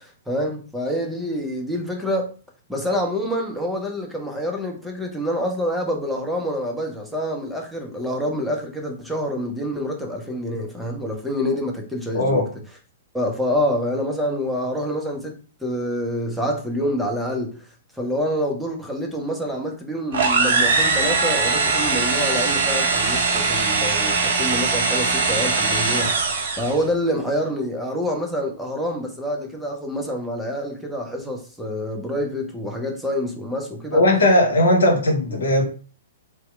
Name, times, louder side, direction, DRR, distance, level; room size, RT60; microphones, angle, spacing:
voice 1, 0.0-2.3 2.7-12.4 13.1-17.7 18.0-34.0, equal, ahead, 0.5 m, -27 dB
voice 2, 12.1-12.5 33.9-35.6, left 1 dB, 65° left, 0.7 m, -18 dB
sound 1, 20.1-26.8, right 4 dB, 55° right, 0.5 m, -21 dB
2.7 x 2.0 x 2.3 m
figure-of-eight pair, 115°, 0 cm